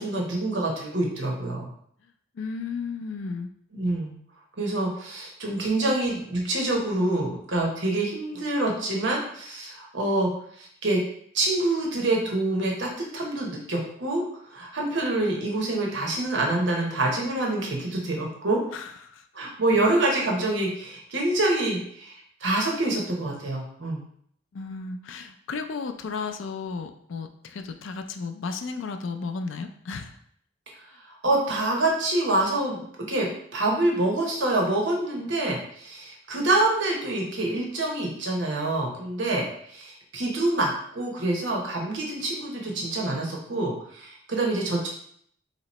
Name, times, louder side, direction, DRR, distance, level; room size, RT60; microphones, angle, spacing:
voice 1, 0.0-1.7 3.7-4.2 4.6-10.3 10.6-11.0 11.3-14.2 14.5-18.6 19.3-24.0 31.2-32.8 33.1-44.9, right 2 dB, 65° right, -1 dB, 0.9 m, -26 dB
voice 2, 2.3-3.5 18.7-19.2 24.5-30.2, left 4 dB, 70° left, 8 dB, 0.4 m, -34 dB
3.1 x 2.9 x 4.1 m, 0.65 s
head